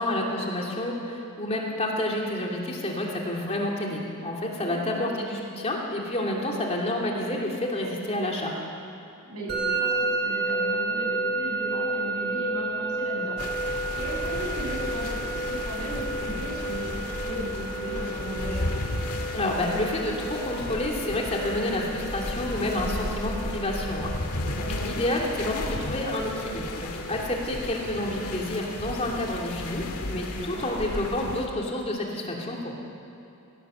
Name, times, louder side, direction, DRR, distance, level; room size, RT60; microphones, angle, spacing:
voice 1, 0.0-8.5 19.3-24.1 24.7-32.8, left 1 dB, 30° left, -1 dB, 2.8 m, -29 dB
voice 2, 4.6-5.1 9.2-18.7 24.5-25.0 30.3-30.7, right 1 dB, 85° right, -2 dB, 6.9 m, -36 dB
Musical instrument, 9.5-28.4, right 3 dB, 50° right, 3.8 m, -32 dB
sound 1, 13.4-31.5, left 2 dB, 85° left, 1.8 m, -34 dB
19.5 x 16.5 x 8.0 m, 2.7 s
head